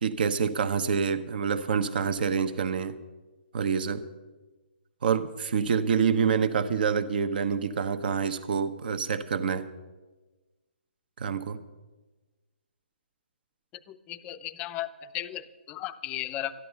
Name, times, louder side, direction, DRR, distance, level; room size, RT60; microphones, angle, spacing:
voice 1, 0.0-3.0 3.5-4.0 5.0-9.7 11.2-11.6, right 6 dB, 55° right, 11 dB, 1.0 m, -27 dB
voice 2, 13.9-16.5, left 13 dB, 20° left, 12 dB, 0.6 m, -36 dB
13.0 x 10.5 x 6.9 m, 1.2 s
figure-of-eight pair, 140°, 6 cm